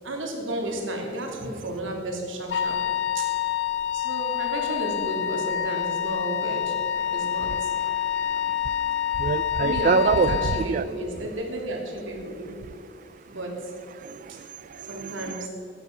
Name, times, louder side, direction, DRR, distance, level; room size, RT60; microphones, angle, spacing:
voice 1, 0.0-2.8 3.1-3.3 3.9-6.7 7.1-7.7 9.6-12.5 13.3-13.5 14.3-14.4 14.9-15.5, right 1 dB, 90° right, 0 dB, 3.1 m, -32 dB
Wind instrument woodwind instrument, 2.5-10.7, left 10 dB, 70° left, 0.6 m, -27 dB
voice 2, 9.2-10.9 14.0-15.1, right 4 dB, 45° right, 16 dB, 0.3 m, -25 dB
16.0 x 11.0 x 6.1 m, 2.8 s
head